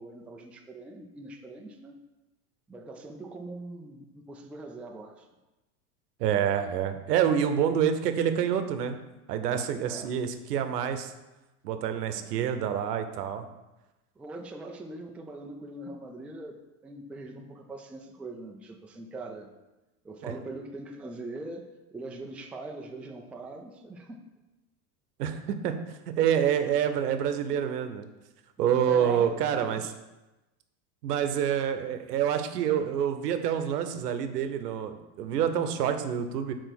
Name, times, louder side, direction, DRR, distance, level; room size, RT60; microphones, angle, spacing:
voice 1, 0.0-2.0 2.7-5.3 9.8-10.2 12.1-12.3 14.2-19.5 20.0-24.2 28.9-29.9, right 2 dB, 5° right, 2 dB, 0.3 m, -42 dB
voice 2, 6.2-9.0 9.3-11.1 11.6-13.4 25.2-25.8 26.1-28.1 28.6-29.8 31.0-36.5, right 9 dB, 90° right, 8 dB, 0.8 m, -27 dB
4.8 x 4.5 x 5.9 m, 1.0 s
hypercardioid pair, 105°, 46 cm